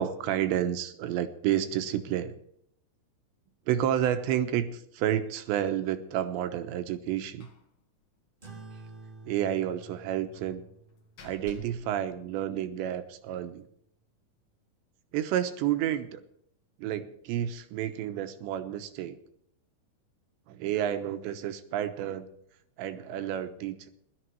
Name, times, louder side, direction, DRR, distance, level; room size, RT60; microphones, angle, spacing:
voice 1, 0.0-2.4 3.7-7.5 9.3-10.6 11.2-13.7 15.1-16.2 16.8-19.2 20.5-22.3 22.8-23.9, right 11 dB, 75° right, 10 dB, 3.2 m, -30 dB
Slam, 7.4-7.7 8.0-8.1 8.4-8.6 10.3-12.9, left 4 dB, 70° left, 1.4 m, -53 dB
sound 1, 8.4-13.3, right 3 dB, 25° right, 1.1 m, -51 dB
17.5 x 12.0 x 4.6 m, 0.70 s
omnidirectional pair, 5.3 m